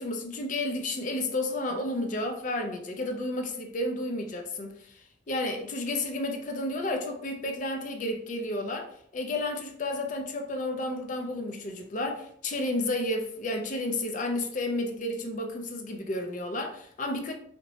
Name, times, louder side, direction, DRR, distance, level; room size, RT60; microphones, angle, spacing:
voice 1, 0.0-17.3, left 1 dB, 40° left, 0.4 m, -32 dB
2.7 x 2.1 x 2.9 m
head